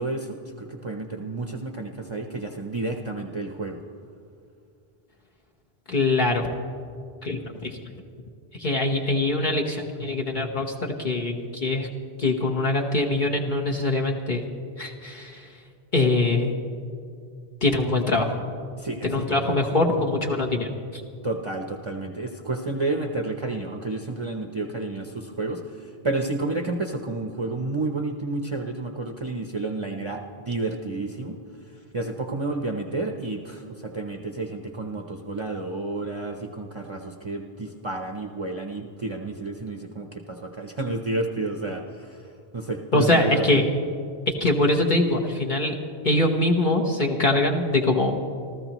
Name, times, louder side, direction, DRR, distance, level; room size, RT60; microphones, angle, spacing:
voice 1, 0.0-3.8 18.8-19.6 21.2-43.6, right 2 dB, 30° right, 3 dB, 0.8 m, -31 dB
voice 2, 5.9-6.5 7.2-7.9 8.6-11.9 12.2-14.4 14.8-15.5 15.9-16.5 17.6-18.4 19.0-21.0 42.9-43.6 44.3-45.7 46.0-48.2, left 2 dB, 50° left, 0 dB, 1.2 m, -23 dB
26.5 x 14.0 x 3.0 m, 2.4 s
omnidirectional pair, 1.1 m